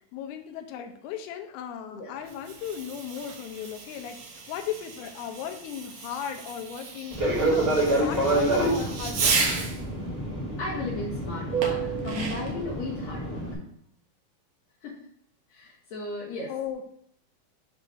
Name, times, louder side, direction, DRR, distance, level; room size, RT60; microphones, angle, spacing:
voice 1, 0.1-9.4 16.5-16.8, left 9 dB, 80° left, 5 dB, 2.7 m, -36 dB
Fireworks, 2.2-9.8 11.6-12.6, right 4 dB, 65° right, 1.7 m, -33 dB
Fixed-wing aircraft airplane, 7.1-13.5, right 2 dB, 20° right, 2.0 m, -27 dB
voice 2, 10.6-13.4 14.8-15.0 15.5-16.5, left 2 dB, 65° left, -5 dB, 2.8 m, -35 dB
7.5 x 3.2 x 6.1 m, 0.67 s
omnidirectional pair, 4.6 m